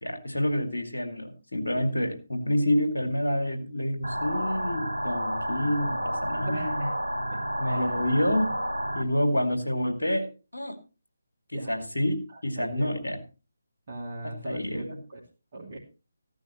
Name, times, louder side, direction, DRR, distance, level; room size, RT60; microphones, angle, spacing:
voice 1, 0.0-6.9 7.6-8.6 8.9-10.7 11.5-13.2 14.2-15.0, left 1 dB, 80° left, 6 dB, 2.3 m, -28 dB
sound 1, 4.0-9.0, equal, 85° right, 1.8 m, -30 dB
voice 2, 6.5-6.9 7.3-7.4 7.7-8.0 11.5-11.8 12.3-13.0 13.9-15.2 15.5-15.8, right 1 dB, 40° right, -4 dB, 2.6 m, -40 dB
15.0 x 11.5 x 3.1 m, 0.32 s
figure-of-eight pair, 150°, 0 cm